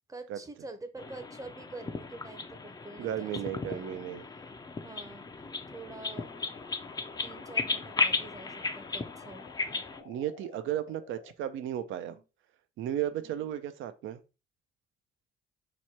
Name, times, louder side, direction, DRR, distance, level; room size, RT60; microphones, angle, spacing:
voice 1, 0.1-3.4 3.7-4.0 4.8-5.3 5.7-6.3 7.2-9.8 12.1-12.2 13.2-13.5, right 2 dB, 15° right, 0.6 m, -46 dB
sound 1, 1.0-10.0, left 4 dB, 20° left, 0.4 m, -35 dB
voice 2, 3.0-4.3 10.0-12.2 12.8-14.2, right 11 dB, 75° right, 0.5 m, -34 dB
sound 2, 6.1-11.3, left 8 dB, 80° left, 0.5 m, -53 dB
3.0 x 2.2 x 4.2 m
cardioid pair, 90°, 20 cm